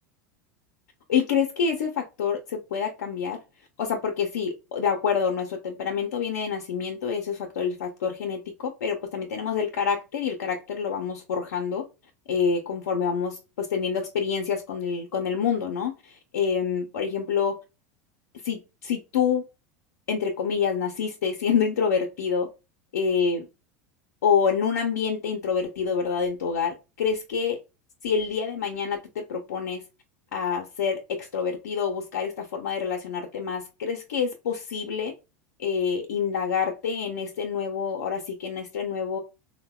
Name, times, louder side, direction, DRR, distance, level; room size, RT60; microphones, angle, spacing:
voice 1, 1.1-3.4 3.8-11.8 12.3-17.6 18.4-19.4 20.1-22.5 22.9-23.5 24.2-27.6 28.0-29.8 30.3-35.1 35.6-39.2, left 6 dB, 85° left, 0.6 m, -27 dB
3.8 x 2.1 x 2.2 m
hypercardioid pair, 100°, 9 cm